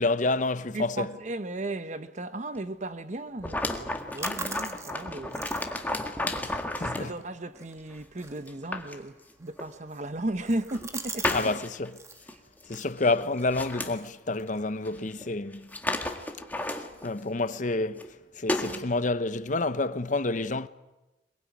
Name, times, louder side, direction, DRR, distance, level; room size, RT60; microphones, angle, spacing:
voice 1, 0.0-1.1 6.3-7.1 11.3-12.0 12.7-15.7 16.7-18.0 18.4-20.7, left 2 dB, 45° left, 0.8 m, -29 dB
voice 2, 0.7-6.0 6.8-11.5, right 2 dB, 40° right, 1.0 m, -36 dB
sound 1, 3.4-7.1 7.9-8.0 8.5-9.0 9.6-9.7 10.4-10.9 11.2-11.9 12.2-12.3 12.6-12.8 13.1-13.9 14.8-14.9 15.2-15.3 15.5-17.2 17.9-18.1 18.5-18.8, left 1 dB, 10° left, 1.8 m, -32 dB
sound 2, 3.8-11.5 11.7-12.2 12.7-15.0, right 4 dB, 15° right, 1.4 m, -44 dB
22.5 x 22.0 x 9.5 m
head